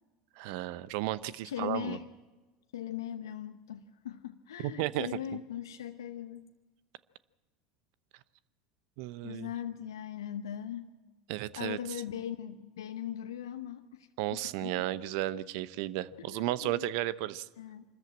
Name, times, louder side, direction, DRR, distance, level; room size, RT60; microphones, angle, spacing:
voice 1, 0.4-2.0 4.6-5.1 9.0-9.5 11.3-11.8 14.2-17.5, right 15 dB, 65° right, 18 dB, 0.8 m, -34 dB
voice 2, 1.4-2.1 2.7-6.5 9.2-10.9 11.6-14.9 16.2-16.9 17.6-17.8, left 10 dB, 80° left, 8 dB, 0.9 m, -40 dB
25.0 x 13.5 x 8.8 m, 1.3 s
hypercardioid pair, 85°, 2 cm